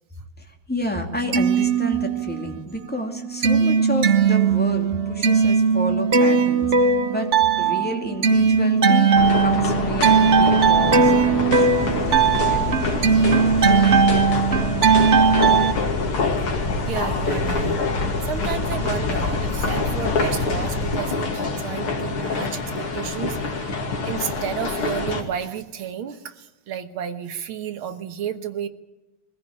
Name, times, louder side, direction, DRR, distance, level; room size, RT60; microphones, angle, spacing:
voice 1, 0.4-7.3 7.6-9.1 9.4-14.3, equal, 5° left, 2 dB, 2.4 m, -31 dB
sound 1, 1.1-2.5 2.9-15.7, right 5 dB, 45° right, 1.0 m, -18 dB
sound 2, 9.1-25.2, left 3 dB, 75° left, 3.4 m, -26 dB
sound 3, 11.6-21.0, left 2 dB, 50° left, 2.2 m, -30 dB
voice 2, 16.9-17.8 18.2-23.4 24.1-28.7, right 9 dB, 70° right, 9 dB, 2.0 m, -31 dB
22.5 x 15.5 x 8.6 m, 1.1 s
omnidirectional pair, 2.4 m